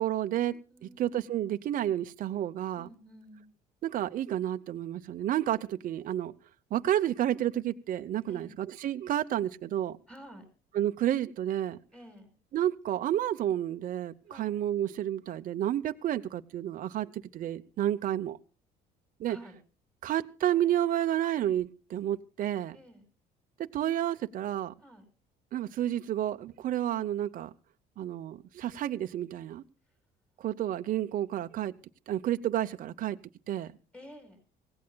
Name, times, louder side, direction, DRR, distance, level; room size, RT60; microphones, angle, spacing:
voice 1, 0.0-2.9 3.8-6.3 6.7-10.0 10.7-11.8 12.5-18.4 19.2-19.4 20.0-22.8 23.6-24.7 25.5-27.5 28.0-29.6 30.4-31.7 32.1-33.2 33.5-33.7, right 12 dB, 55° right, 8 dB, 0.7 m, -30 dB
voice 2, 0.7-1.0 2.8-3.5 8.3-8.6 10.1-10.5 11.9-12.3 14.3-14.5 19.2-19.6 22.7-23.0 24.8-25.0 33.9-34.4, equal, 5° left, 6 dB, 5.2 m, -50 dB
25.0 x 17.0 x 2.2 m, 0.34 s
cardioid pair, 110°, 17 cm